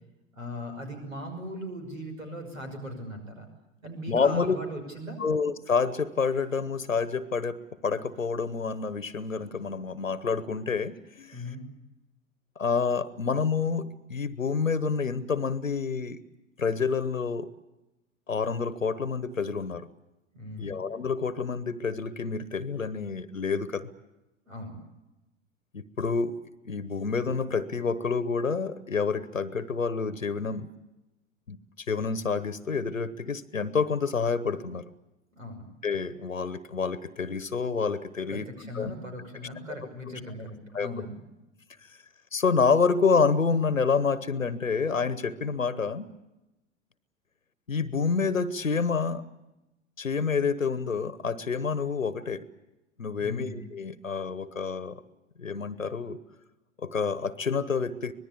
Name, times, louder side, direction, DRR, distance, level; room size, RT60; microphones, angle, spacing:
voice 1, 0.3-3.5 3.8-5.2 11.3-11.6 20.3-20.8 24.5-24.8 35.4-35.7 38.3-41.2 53.2-53.6, equal, 80° right, 6 dB, 6.0 m, -39 dB
voice 2, 4.1-4.6 5.2-11.4 12.6-16.2 16.6-17.5 18.3-19.9 20.6-23.9 25.7-26.4 26.6-30.7 31.5-34.9 35.8-38.5 38.7-38.9 40.7-40.9 42.3-46.1 47.7-49.2 50.0-52.5 53.0-55.0 55.4-56.2 56.8-58.1, left 5 dB, 85° left, 17 dB, 1.1 m, -28 dB
25.0 x 20.0 x 8.5 m, 0.99 s
figure-of-eight pair, 90°, 39 cm